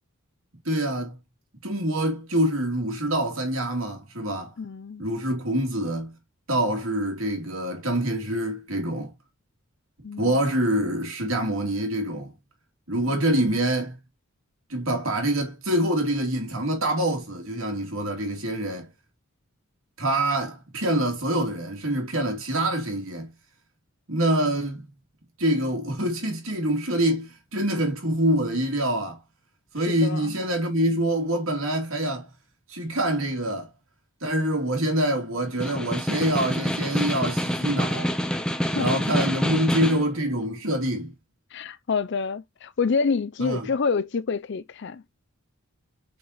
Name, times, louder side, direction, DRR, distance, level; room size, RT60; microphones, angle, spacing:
voice 1, 0.6-1.2 1.6-4.5 5.0-6.1 6.5-9.1 10.2-12.3 12.9-14.0 14.7-18.9 20.0-23.3 24.1-24.9 25.4-29.2 29.7-32.3 32.7-33.7 34.2-38.1 38.7-41.1 43.4-43.7, right 1 dB, 65° right, 2.9 m, -25 dB
voice 2, 4.6-5.0 10.0-10.4 29.9-30.3 38.8-39.0 41.5-45.0, left 5 dB, 50° left, 0.5 m, -27 dB
Snare drum, 35.5-40.1, equal, 5° left, 0.6 m, -27 dB
7.1 x 4.5 x 3.0 m
head